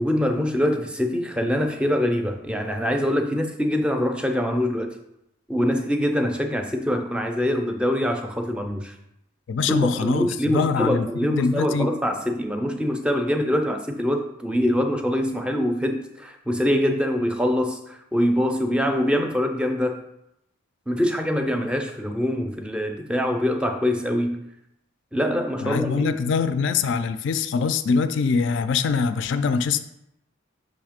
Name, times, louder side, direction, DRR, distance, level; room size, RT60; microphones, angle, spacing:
voice 1, 0.0-4.9 5.5-8.9 9.7-20.0 20.9-24.4 25.1-26.1, equal, 5° right, 5 dB, 0.4 m, -24 dB
voice 2, 9.5-11.9 25.6-29.8, left 5 dB, 60° left, 11 dB, 0.3 m, -23 dB
6.2 x 3.1 x 5.0 m, 0.83 s
head